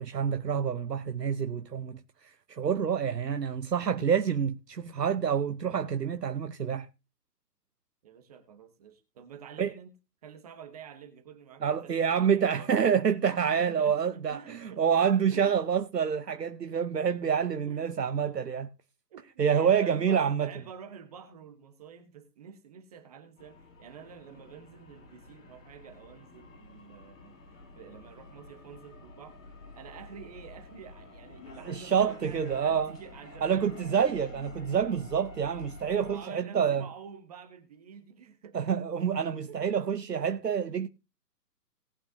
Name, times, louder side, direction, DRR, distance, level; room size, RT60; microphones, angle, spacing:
voice 1, 0.0-6.9 9.6-9.7 11.6-18.7 19.4-20.5 31.6-32.9 33.4-36.8 38.5-40.9, right 7 dB, 80° right, 0.9 m, -27 dB
voice 2, 8.0-9.9 10.2-12.7 13.5-14.8 15.3-15.5 17.7-17.9 19.1-27.4 27.8-34.1 34.7-35.1 36.1-38.6 39.4-40.0, right 7 dB, 25° right, 1.1 m, -49 dB
sound 1, 23.4-36.2, left 3 dB, 55° left, 4.4 m, -49 dB
18.5 x 8.8 x 2.7 m
figure-of-eight pair, 140°, 48 cm